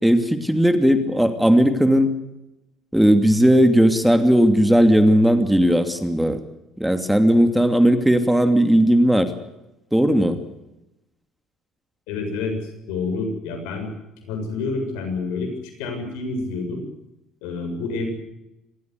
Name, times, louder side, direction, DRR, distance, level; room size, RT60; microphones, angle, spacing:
voice 1, 0.0-2.1 2.9-6.4 6.8-9.3 9.9-10.4, equal, 5° right, 8 dB, 2.7 m, -17 dB
voice 2, 12.1-13.9 14.2-15.5 15.8-16.8 17.4-18.1, left 3 dB, 80° left, 6 dB, 7.5 m, -28 dB
27.0 x 16.0 x 8.2 m, 0.94 s
hypercardioid pair, 70°, 0 cm